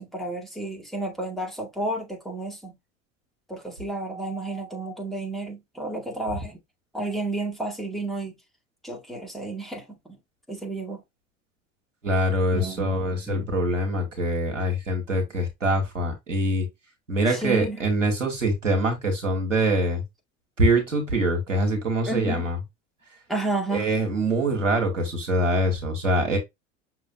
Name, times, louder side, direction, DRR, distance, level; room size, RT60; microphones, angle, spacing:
voice 1, 0.0-2.8 3.5-6.6 6.9-8.4 8.8-10.2 10.5-11.0 12.5-13.6 17.3-17.8 22.1-22.5 23.3-23.9, right 2 dB, ahead, 2.0 m, -31 dB
voice 2, 12.0-16.7 17.1-20.0 20.6-22.6 23.7-26.4, right 1 dB, 90° right, 1.6 m, -24 dB
6.1 x 3.0 x 2.7 m
figure-of-eight pair, 70°, 37 cm